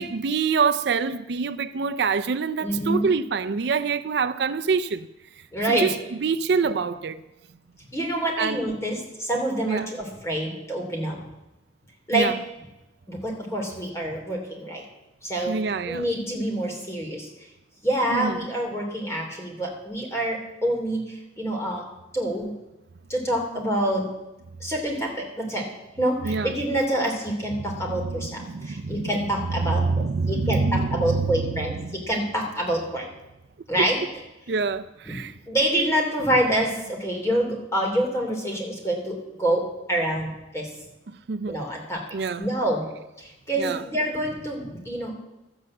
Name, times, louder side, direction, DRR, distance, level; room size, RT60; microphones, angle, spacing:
voice 1, 0.0-5.1 5.7-6.0 6.2-7.2 8.4-8.6 9.7-9.9 12.1-12.3 15.5-16.0 18.1-18.3 26.2-26.5 28.2-29.1 29.6-32.0 34.5-35.3 41.3-41.6 42.1-42.5 43.6-43.8, right 5 dB, 60° right, 0.4 m, -25 dB
voice 2, 2.6-3.2 5.5-5.9 7.9-11.2 12.1-12.3 13.1-14.8 15.2-15.6 15.9-17.3 17.8-21.8 22.1-22.5 23.1-24.0 24.6-25.7 26.0-33.1 33.7-34.0 35.5-40.7 41.5-42.0 42.4-42.8 43.2-45.1, right 1 dB, 15° left, 3.1 m, -26 dB
12.5 x 8.0 x 7.7 m
head